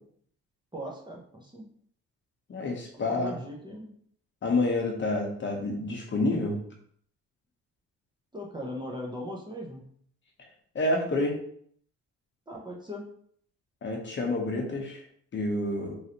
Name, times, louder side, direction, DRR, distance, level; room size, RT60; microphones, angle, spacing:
voice 1, 0.7-1.6 2.9-3.9 8.3-9.8 12.5-13.1, equal, 15° right, -1 dB, 0.6 m, -39 dB
voice 2, 2.5-3.3 4.4-6.6 10.7-11.4 13.8-15.0 15.3-15.9, left 2 dB, 40° left, 1 dB, 0.8 m, -28 dB
3.1 x 2.6 x 2.8 m, 0.62 s
cardioid pair, 90°, 30 cm